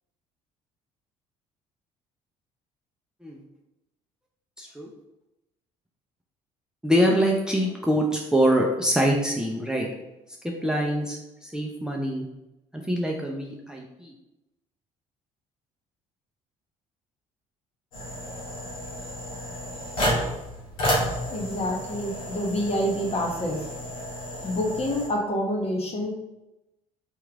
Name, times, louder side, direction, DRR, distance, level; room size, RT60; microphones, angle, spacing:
voice 1, 4.6-4.9 6.8-9.9 10.4-12.3 12.9-14.1, equal, 5° right, 0 dB, 0.6 m, -24 dB
sound 1, 17.9-25.1, equal, 85° left, 1.3 m, -31 dB
voice 2, 21.3-23.7 24.4-26.1, equal, 35° left, 1 dB, 1.0 m, -27 dB
3.6 x 3.1 x 3.5 m, 0.93 s
hypercardioid pair, 60°, 17 cm